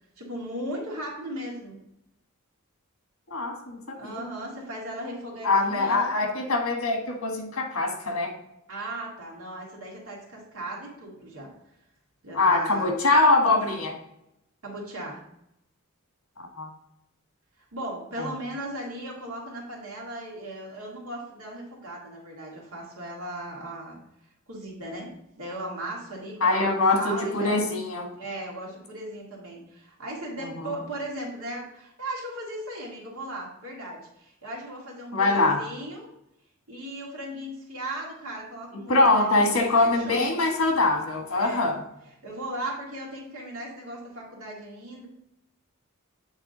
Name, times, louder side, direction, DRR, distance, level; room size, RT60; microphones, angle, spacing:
voice 1, 0.2-1.8 3.9-6.1 8.7-11.5 12.2-12.9 14.6-15.2 17.6-24.0 24.5-25.1 25.4-27.7 28.1-36.1 36.7-40.3 41.3-41.7 42.2-45.1, right 1 dB, 85° right, -2 dB, 2.1 m, -37 dB
voice 2, 3.3-4.2 5.4-8.3 12.3-13.9 16.4-16.7 18.2-18.3 26.4-28.1 30.6-30.7 35.1-35.6 38.7-41.8, left 2 dB, 75° left, 2 dB, 1.4 m, -23 dB
8.2 x 3.7 x 3.8 m, 0.83 s
head